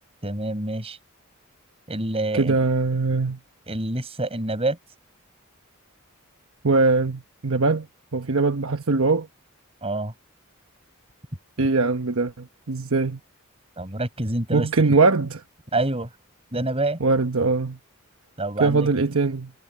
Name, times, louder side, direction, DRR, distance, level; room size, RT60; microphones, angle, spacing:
voice 1, 0.2-1.0 1.9-2.5 3.7-4.8 9.8-10.1 13.8-14.7 15.7-16.1 16.5-17.0 18.4-18.9, right 2 dB, 30° right, 5.9 m, -27 dB
voice 2, 2.3-3.4 6.6-7.9 8.1-9.3 11.6-13.2 14.5-15.4 17.0-17.8 18.6-19.5, right 3 dB, 70° right, 1.1 m, -21 dB
head